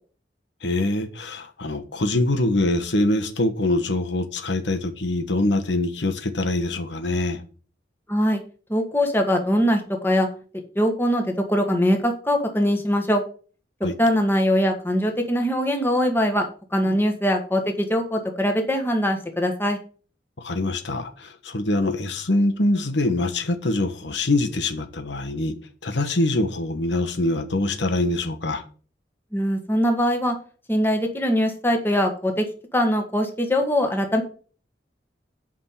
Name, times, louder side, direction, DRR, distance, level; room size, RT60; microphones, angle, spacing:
voice 1, 0.6-7.4 13.8-13.9 16.9-17.0 20.4-25.6 25.8-28.6, left 2 dB, 90° left, 1.3 m, -24 dB
voice 2, 8.1-8.4 8.7-10.3 10.7-13.2 14.0-19.8 29.3-30.4 30.7-32.5 32.7-34.2, equal, 10° left, 1.6 m, -22 dB
8.7 x 5.3 x 6.8 m
head